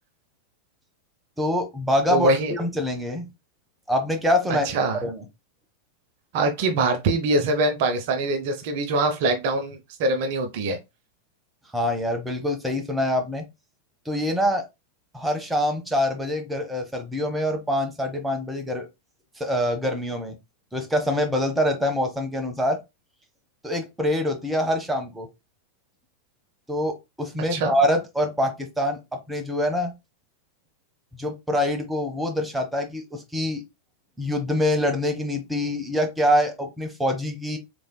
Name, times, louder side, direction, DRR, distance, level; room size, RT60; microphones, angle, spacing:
voice 1, 1.4-3.3 3.9-4.7 5.0-5.2 11.7-13.4 14.1-14.6 15.1-18.9 19.4-20.4 20.7-22.8 23.6-25.3 26.7-29.0 29.3-29.9 31.2-33.6 34.2-37.6, left 1 dB, 5° right, 0.9 m, -25 dB
voice 2, 2.1-2.6 4.6-5.0 6.3-10.8 27.5-27.7, right 2 dB, 50° right, 0.7 m, -23 dB
3.7 x 3.3 x 2.2 m
figure-of-eight pair, 90°, 0 cm